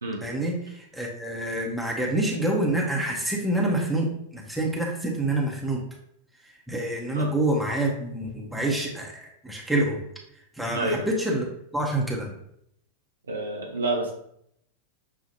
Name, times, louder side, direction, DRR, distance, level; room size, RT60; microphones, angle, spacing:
voice 1, 0.2-0.6 0.9-5.8 6.7-9.1 9.4-10.0 10.6-11.4 11.7-12.3, right 1 dB, ahead, -2 dB, 0.9 m, -26 dB
voice 2, 10.7-11.1 13.3-14.1, right 2 dB, 75° right, 0 dB, 0.9 m, -28 dB
6.6 x 2.4 x 2.8 m, 0.72 s
figure-of-eight pair, 90°, 0 cm